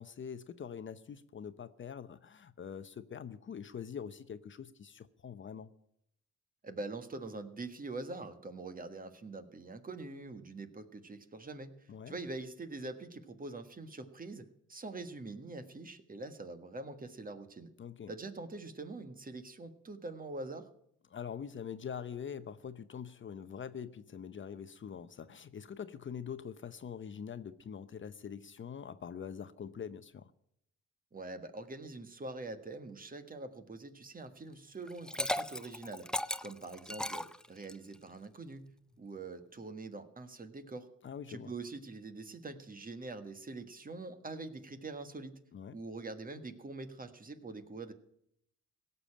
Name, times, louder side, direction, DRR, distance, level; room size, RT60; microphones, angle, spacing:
voice 1, 0.0-5.7 11.9-12.1 17.8-18.1 21.1-30.3 41.0-41.5 45.5-45.8, left 7 dB, 40° left, 0.8 m, -44 dB
voice 2, 6.6-17.7 18.1-20.7 31.1-38.6 39.0-40.9 41.3-45.3 45.7-47.9, right 3 dB, 30° right, 1.5 m, -44 dB
Liquid, 34.9-37.9, left 1 dB, 5° left, 0.5 m, -36 dB
17.0 x 6.9 x 8.7 m
cardioid pair, 90°, 30 cm